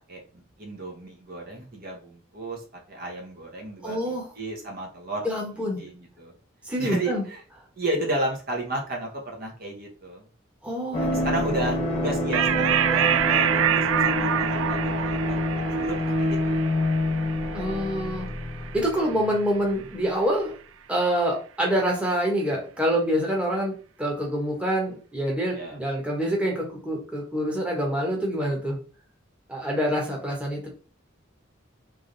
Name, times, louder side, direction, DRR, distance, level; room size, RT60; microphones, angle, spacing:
voice 1, 0.1-5.3 5.5-6.3 6.8-7.4 7.8-10.2 11.1-15.4 15.7-16.6 25.5-25.8, right 1 dB, 50° right, 0 dB, 1.1 m, -33 dB
voice 2, 3.8-4.3 5.2-5.8 6.6-7.2 10.6-11.1 17.5-18.3 18.7-20.6 20.9-23.7 24.0-28.8 29.5-30.7, equal, 5° right, -2 dB, 1.2 m, -26 dB
sound 1, 10.9-19.4 19.7-19.8, left 1 dB, 30° left, 1.2 m, -27 dB
sound 2, 12.3-19.2, right 9 dB, 85° right, 0.4 m, -27 dB
3.5 x 3.3 x 4.0 m, 0.38 s
head